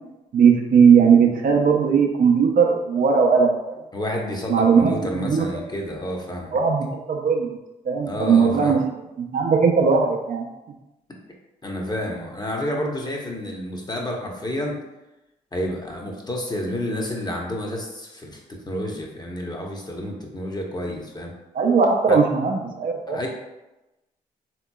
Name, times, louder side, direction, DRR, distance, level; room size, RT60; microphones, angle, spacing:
voice 1, 0.3-3.8 4.5-5.5 6.5-7.5 7.9-8.8 9.2-10.5 21.5-23.2, right 6 dB, 50° right, 1 dB, 0.6 m, -18 dB
voice 2, 3.9-6.5 8.0-8.8 11.6-14.8 15.5-21.3 22.1-22.2 23.1-23.3, left 1 dB, 20° left, -1 dB, 0.8 m, -30 dB
3.7 x 2.9 x 2.2 m, 0.99 s
hypercardioid pair, 45°, 19 cm